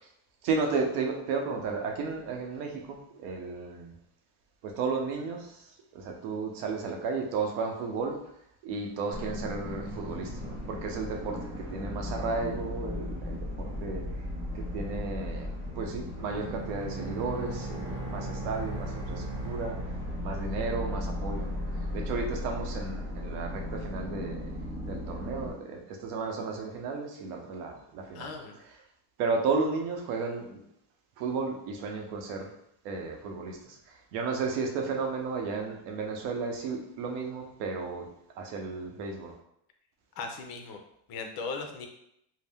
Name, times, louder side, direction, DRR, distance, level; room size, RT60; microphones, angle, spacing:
voice 1, 0.4-3.9 4.6-8.2 8.6-14.0 14.5-19.8 20.2-21.6 21.9-24.6 24.9-28.6 29.2-30.6 31.2-32.5 32.8-38.1 38.4-39.4, right 4 dB, 70° right, 2 dB, 0.8 m, -33 dB
sound 1, 9.1-25.5, left 1 dB, 25° right, 1.1 m, -36 dB
Bowed string instrument, 16.2-20.6, right 4 dB, 10° right, 0.6 m, -41 dB
voice 2, 28.1-28.5 40.2-40.8 41.1-41.9, left 4 dB, 50° left, 4 dB, 0.6 m, -37 dB
2.7 x 2.0 x 3.4 m, 0.75 s
supercardioid pair, 115°, 47 cm